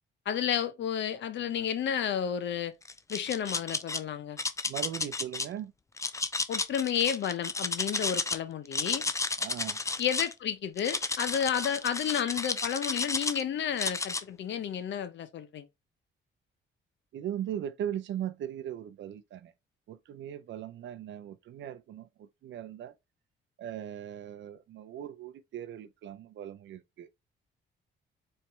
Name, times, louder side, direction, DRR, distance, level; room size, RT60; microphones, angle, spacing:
voice 1, 0.3-2.7 3.1-4.4 6.5-9.0 10.0-15.7, left 9 dB, 65° left, 0.8 m, -31 dB
sound 1, 2.8-4.0 4.4-5.5 6.0-8.4 8.6-10.3 10.8-13.4 13.8-14.2, left 3 dB, 15° left, 0.4 m, -32 dB
voice 2, 4.7-5.7 9.4-9.8 17.1-19.5 19.9-22.9 23.6-27.1, right 10 dB, 70° right, 0.6 m, -39 dB
4.3 x 3.2 x 3.2 m
cardioid pair, 90°, 20 cm